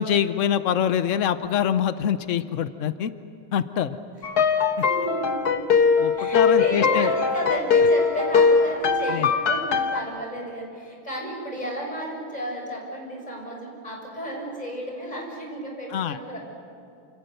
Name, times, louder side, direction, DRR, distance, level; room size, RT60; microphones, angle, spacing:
voice 1, 0.0-3.1 3.5-4.0 6.0-7.1 9.1-9.3 15.9-16.2, left 9 dB, 90° left, 12 dB, 0.6 m, -24 dB
sound 1, 4.2-10.0, left 5 dB, 50° left, 1.6 m, -21 dB
voice 2, 4.8-5.6 6.1-16.4, equal, 20° left, -1 dB, 6.5 m, -33 dB
28.5 x 28.0 x 6.7 m, 2.5 s
omnidirectional pair, 2.4 m